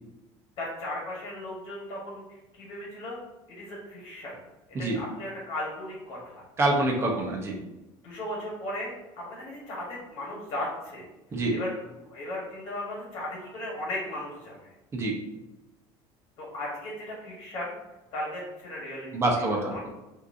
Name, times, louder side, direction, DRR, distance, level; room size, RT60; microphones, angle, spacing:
voice 1, 0.6-3.2 3.5-4.4 4.7-6.4 8.0-11.1 11.5-14.6 16.4-17.7 18.1-19.2 19.7-19.9, left 1 dB, 50° left, -4 dB, 1.5 m, -36 dB
voice 2, 6.6-7.6 11.3-11.5 14.9-15.2 19.1-19.9, right 2 dB, 25° right, 0 dB, 0.9 m, -26 dB
5.8 x 2.8 x 2.8 m, 1.0 s
cardioid pair, 150°, 11 cm